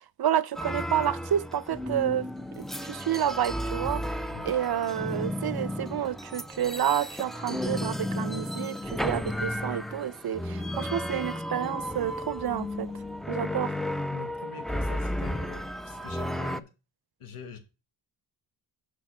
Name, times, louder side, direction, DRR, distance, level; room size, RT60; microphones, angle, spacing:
voice 1, 0.2-2.3 2.6-4.0 4.4-12.9 13.3-13.7, right 10 dB, 50° right, 0.6 m, -29 dB
sound 1, 0.6-16.6, left 1 dB, ahead, 0.3 m, -33 dB
voice 2, 14.1-16.7 17.2-17.6, left 6 dB, 85° left, 1.2 m, -44 dB
6.1 x 4.5 x 6.1 m
cardioid pair, 55°, 49 cm